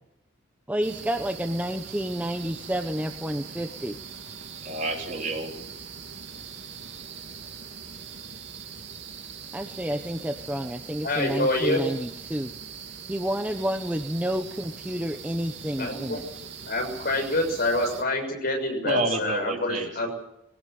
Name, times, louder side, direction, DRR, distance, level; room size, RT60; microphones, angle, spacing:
voice 1, 0.7-4.0 9.5-12.5 13.1-16.2, equal, 10° right, 5 dB, 1.0 m, -30 dB
sound 1, 0.8-18.0, right 6 dB, 60° right, 2.9 m, -41 dB
voice 2, 4.6-5.7 18.8-20.1, right 1 dB, 40° right, 1 dB, 3.9 m, -29 dB
voice 3, 11.0-11.8 15.8-16.2 16.7-20.1, left 1 dB, 50° left, 3 dB, 6.7 m, -26 dB
22.5 x 18.0 x 7.8 m, 0.81 s
head